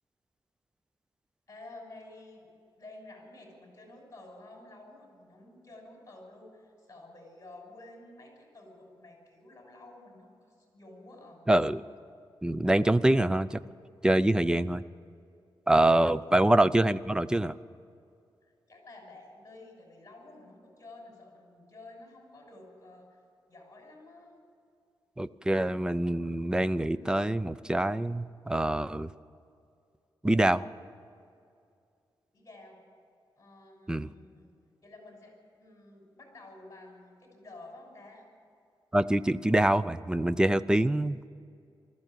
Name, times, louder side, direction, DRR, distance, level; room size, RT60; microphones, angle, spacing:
voice 1, 1.5-11.4 16.3-16.4 18.4-23.2 23.5-24.3 32.3-32.8 33.4-34.5 34.8-38.3, left 2 dB, 35° left, 1 dB, 6.2 m, -51 dB
voice 2, 11.5-11.8 12.4-13.6 14.0-14.8 15.7-17.6 25.2-29.1 30.2-30.6 33.9-34.1 38.9-41.3, right 1 dB, 10° right, 15 dB, 0.5 m, -25 dB
20.0 x 14.5 x 9.1 m, 2.4 s
wide cardioid pair, 130°, 9 cm